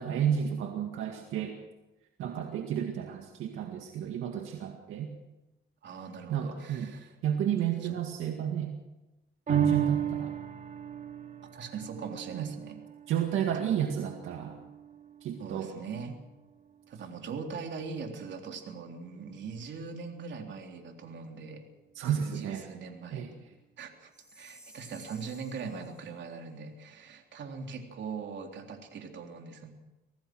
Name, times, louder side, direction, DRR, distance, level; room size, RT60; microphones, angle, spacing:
voice 1, 0.0-1.6 2.2-5.1 6.3-6.9 7.2-8.7 9.5-10.3 12.3-12.5 13.1-14.6 15.2-15.7 22.0-22.6 23.1-23.3, right 9 dB, 85° right, 3 dB, 2.0 m, -31 dB
voice 2, 5.8-7.2 7.8-8.0 11.5-12.8 13.5-13.6 15.4-16.2 16.9-21.7 22.2-23.3 23.8-29.7, right 5 dB, 65° right, 3 dB, 3.7 m, -41 dB
sound 1, 9.5-16.1 16.6-16.7, right 9 dB, 40° right, 2.8 m, -35 dB
Chime, 24.1-26.1, right 1 dB, 5° right, 6.0 m, -55 dB
25.0 x 17.5 x 6.3 m, 1.0 s
cardioid pair, 90°, 20 cm